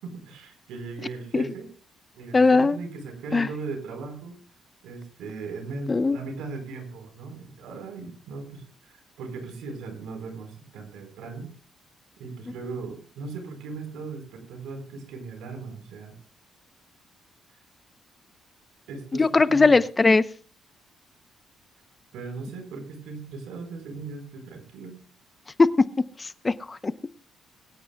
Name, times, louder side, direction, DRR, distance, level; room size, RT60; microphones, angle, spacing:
voice 1, 0.0-1.7 2.2-4.4 4.8-11.5 12.2-16.2 18.9-19.8 22.1-25.0, right 4 dB, 90° right, 5 dB, 4.6 m, -38 dB
voice 2, 2.3-2.8 3.3-3.5 5.9-6.2 19.1-20.2 25.6-25.7 26.2-27.1, left 3 dB, 25° left, 14 dB, 0.8 m, -20 dB
24.0 x 10.0 x 2.3 m, 0.40 s
cardioid pair, 90°, 0 cm